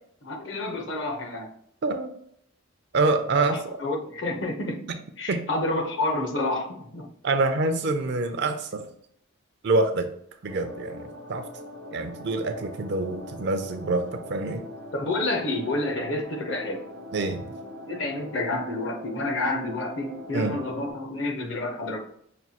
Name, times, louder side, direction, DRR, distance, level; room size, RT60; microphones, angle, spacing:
voice 1, 0.2-1.5 3.3-7.1 14.9-16.8 17.9-22.0, left 2 dB, 60° left, 2 dB, 0.8 m, -29 dB
voice 2, 1.8-2.1 2.9-3.8 4.9-5.0 5.3-5.4 7.2-8.9 9.6-10.1 10.4-11.5 11.9-14.7 17.1-17.5 20.3-20.6, right 3 dB, 55° right, 7 dB, 0.4 m, -26 dB
sound 1, 10.5-20.9, left 1 dB, 75° right, 0.8 m, -41 dB
5.9 x 2.2 x 2.8 m, 0.66 s
head